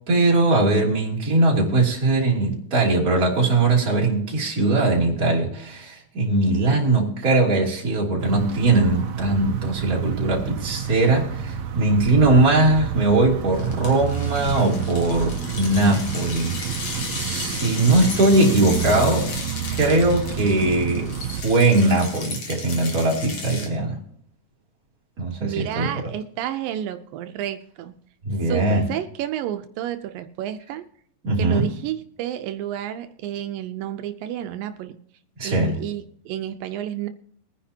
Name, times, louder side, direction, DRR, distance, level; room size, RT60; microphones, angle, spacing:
voice 1, 0.1-16.9 17.1-19.3 19.7-24.0 25.2-25.9 28.2-28.9 31.2-31.7 35.4-35.8, right 2 dB, 25° right, -3 dB, 3.2 m, -20 dB
sound 1, 8.2-21.4, right 8 dB, 70° right, 2.0 m, -29 dB
sound 2, 13.6-23.7, left 3 dB, 50° left, 3.1 m, -35 dB
voice 2, 25.4-27.9 28.5-30.8 31.4-35.0 35.4-37.1, right 11 dB, 85° right, 8 dB, 2.4 m, -31 dB
22.0 x 10.0 x 2.8 m, 0.66 s
omnidirectional pair, 3.9 m